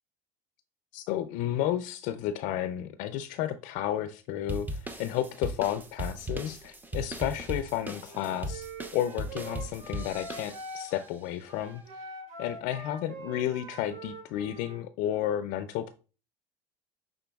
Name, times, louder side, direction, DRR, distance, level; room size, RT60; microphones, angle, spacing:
voice 1, 0.9-8.7 8.9-12.0 12.4-15.9, left 11 dB, 70° left, 0.4 m, -32 dB
sound 1, 4.5-11.0, equal, 15° right, 0.7 m, -38 dB
Wind instrument woodwind instrument, 8.1-11.2 11.4-14.8, right 1 dB, 65° right, 2.0 m, -44 dB
5.9 x 3.7 x 2.3 m
supercardioid pair, 105°, 14 cm